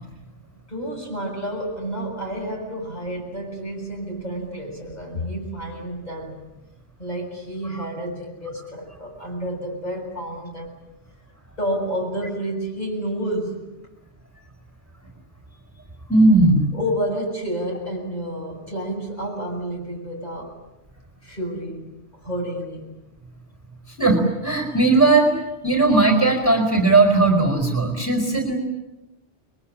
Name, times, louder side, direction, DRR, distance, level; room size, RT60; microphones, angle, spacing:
voice 1, 0.7-6.4 7.0-10.7 11.6-13.7 16.7-20.6 21.2-22.9, equal, 40° left, 0 dB, 7.7 m, -30 dB
voice 2, 16.1-16.7 23.9-25.3 25.6-28.6, right 2 dB, 10° right, 2 dB, 4.6 m, -17 dB
29.5 x 22.5 x 8.8 m, 0.95 s
omnidirectional pair, 1.2 m